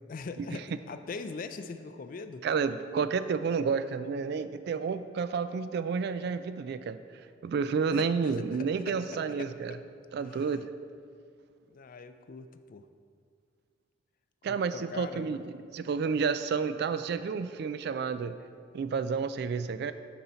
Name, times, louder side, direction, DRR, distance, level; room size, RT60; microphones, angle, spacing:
voice 1, 0.1-2.4 7.9-8.3 8.6-9.8 10.2-10.6 11.7-12.8 14.5-15.4, left 4 dB, 45° left, 9 dB, 0.4 m, -42 dB
voice 2, 2.4-7.0 7.4-9.8 10.1-10.6 14.4-15.4 15.7-18.4 18.7-19.9, right 5 dB, 60° right, 12 dB, 0.3 m, -30 dB
9.3 x 4.1 x 4.4 m, 2.2 s
head